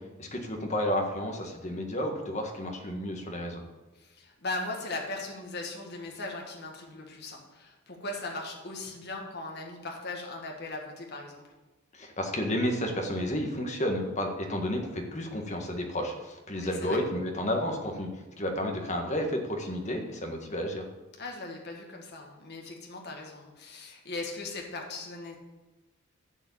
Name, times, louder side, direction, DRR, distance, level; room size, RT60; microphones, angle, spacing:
voice 1, 0.2-3.6 11.9-18.1 18.4-20.8, left 1 dB, 35° left, 2 dB, 1.6 m, -31 dB
voice 2, 3.9-11.4 16.5-17.0 21.2-25.4, left 2 dB, 50° left, 0 dB, 1.7 m, -38 dB
11.5 x 5.0 x 8.5 m, 1.2 s
head